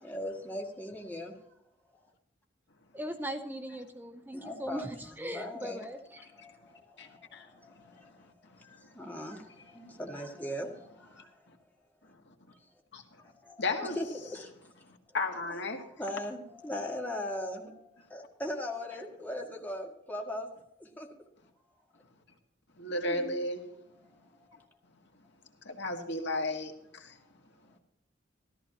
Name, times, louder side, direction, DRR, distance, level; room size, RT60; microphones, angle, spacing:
voice 1, 0.0-1.3 4.3-11.5 12.5-12.6 13.2-14.5 15.7-20.5 20.8-21.1 23.1-23.4 24.1-24.2, left 1 dB, 10° left, 1.8 m, -40 dB
voice 2, 2.9-6.0, equal, 10° right, 0.7 m, -39 dB
voice 3, 7.0-7.5 12.9-13.0 13.6-14.0 15.1-15.8 22.8-23.6 25.6-27.1, left 2 dB, 65° left, 1.8 m, -33 dB
14.0 x 13.5 x 2.9 m
head